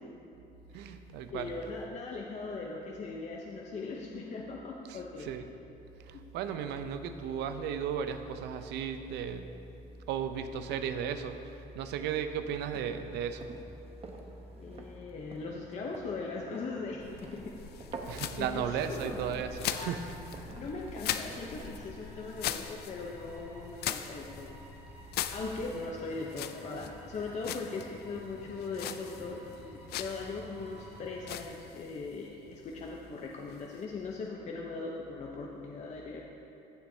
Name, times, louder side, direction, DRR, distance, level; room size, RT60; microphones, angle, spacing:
voice 1, 0.7-1.5 4.9-5.4 6.0-9.6 10.1-11.4 11.7-13.5 18.1-20.1, right 7 dB, 85° right, 9 dB, 0.5 m, -35 dB
voice 2, 1.3-5.3 14.6-17.5 18.4-19.3 19.7-20.0 20.6-24.5 25.3-36.3, left 3 dB, 45° left, -1 dB, 0.8 m, -40 dB
sound 1, 12.6-22.2, right 3 dB, 35° right, 0.9 m, -49 dB
sound 2, 14.1-31.4, right 1 dB, 10° right, 1.6 m, -54 dB
sound 3, 17.0-34.3, left 11 dB, 70° left, 0.4 m, -42 dB
15.0 x 7.1 x 2.7 m, 2.8 s
cardioid pair, 110°, 17 cm